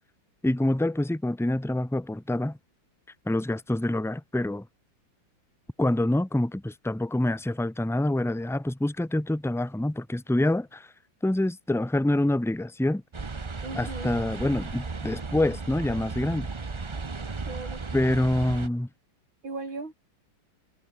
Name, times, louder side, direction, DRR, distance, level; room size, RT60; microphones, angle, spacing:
voice 1, 0.4-2.6 3.2-4.6 5.8-10.9 11.2-13.0 13.7-16.5 17.9-18.9, left 1 dB, ahead, 1.0 m, -26 dB
sound 1, 13.1-18.7, right 4 dB, 50° right, 0.3 m, -35 dB
voice 2, 13.6-14.1 17.5-17.8 19.4-19.9, right 3 dB, 85° right, 5.7 m, -37 dB
omnidirectional pair, 2.1 m